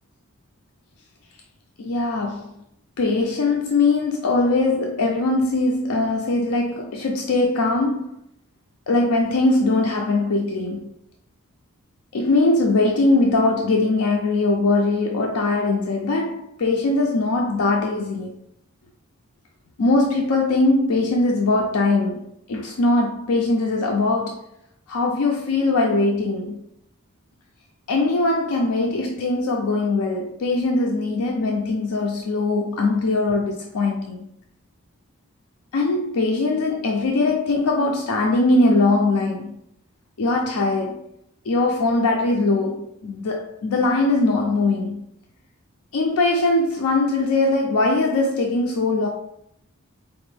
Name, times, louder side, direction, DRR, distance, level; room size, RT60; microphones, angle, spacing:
voice 1, 1.8-2.5 3.0-8.1 8.9-10.9 12.1-18.3 19.8-24.4 24.9-26.6 27.9-34.3 35.7-39.6 40.2-41.0 41.5-45.1 45.9-49.1, left 2 dB, 90° left, 0.5 m, -21 dB
4.1 x 2.5 x 3.3 m
head